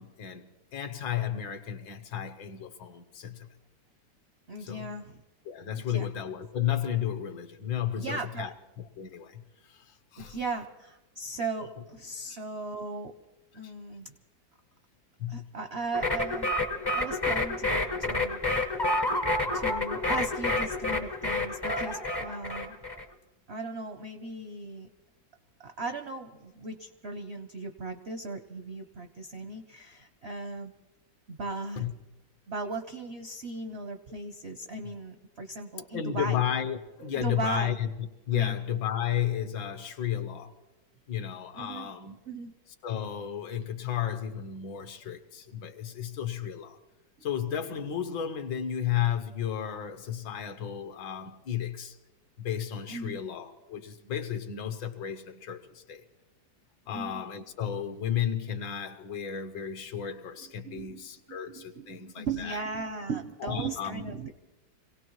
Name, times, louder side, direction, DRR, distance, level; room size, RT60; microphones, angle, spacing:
voice 1, 0.0-3.5 4.6-4.9 5.4-9.4 9.7-9.8 10.1-10.4 12.3-12.4 13.6-13.7 15.2-15.5 31.8-31.9 35.9-40.5 41.1-42.2 42.8-46.8 47.2-52.0 52.4-56.0 56.9-62.6 63.4-64.1, left 9 dB, 75° left, 1.6 m, -33 dB
voice 2, 4.5-5.2 5.9-6.1 8.0-8.5 10.2-13.1 13.5-14.1 15.3-16.5 16.9-18.4 19.5-22.8 23.5-24.9 25.6-30.7 31.3-31.8 32.5-36.4 37.1-37.8 38.3-38.6 41.5-41.9 42.3-42.5 52.9-53.2 56.9-57.2 60.6-64.3, right 3 dB, 65° right, 0.6 m, -37 dB
sound 1, 15.9-23.0, left 2 dB, 35° left, 0.3 m, -29 dB
26.5 x 17.5 x 3.1 m
omnidirectional pair, 2.1 m